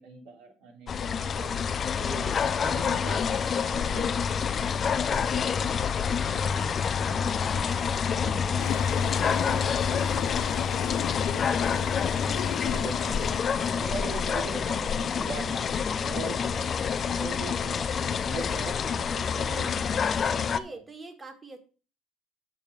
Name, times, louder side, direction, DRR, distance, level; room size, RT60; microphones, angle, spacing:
voice 1, 0.0-1.5 2.0-4.1 4.7-6.7 7.0-7.7 8.2-11.9 12.3-13.2 13.7-15.7 16.0-20.0 20.5-20.8, right 4 dB, 90° right, 1 dB, 3.4 m, -42 dB
sound 1, 0.9-20.6, left 6 dB, 35° left, 0.6 m, -27 dB
voice 2, 1.1-1.5 11.7-11.9 13.8-13.9 18.2-18.5 20.3-21.6, right 3 dB, 20° right, 7 dB, 1.9 m, -45 dB
Toilet flush, 8.6-13.8, left 15 dB, 85° left, 0.4 m, -35 dB
7.1 x 6.8 x 6.4 m, 0.37 s
cardioid pair, 120°, 0 cm